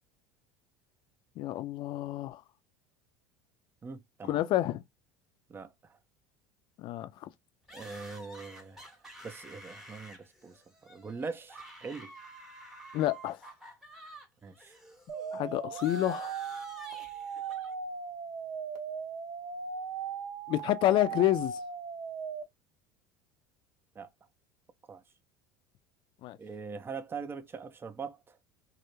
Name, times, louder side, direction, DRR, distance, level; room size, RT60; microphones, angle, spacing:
voice 1, 1.4-2.4 4.3-4.8 6.8-7.3 12.9-13.4 15.3-16.3 20.5-21.6 26.2-26.4, left 14 dB, 50° left, 0.4 m, -29 dB
voice 2, 3.8-4.4 5.5-6.0 7.7-8.9 9.2-12.1 14.4-14.8 24.0-24.1 24.9-25.0 26.4-28.4, right 5 dB, 20° right, 0.5 m, -42 dB
sound 1, 7.7-14.3 14.5-17.7, right 1 dB, 5° right, 0.8 m, -50 dB
sound 2, 15.1-22.4, right 6 dB, 70° right, 0.7 m, -38 dB
2.3 x 2.1 x 2.9 m
hypercardioid pair, 85°, 10 cm